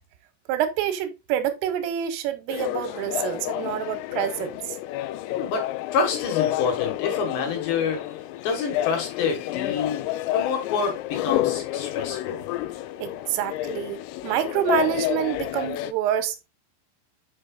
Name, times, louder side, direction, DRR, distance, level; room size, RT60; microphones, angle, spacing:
voice 1, 0.5-4.8 13.0-16.5, right 10 dB, 85° right, 3.4 m, -27 dB
sound 1, 2.5-15.9, left 14 dB, 85° left, 3.2 m, -29 dB
voice 2, 5.3-5.7 5.9-8.1 8.4-12.5, left 5 dB, 65° left, 3.6 m, -27 dB
7.4 x 6.6 x 2.3 m
omnidirectional pair, 5.8 m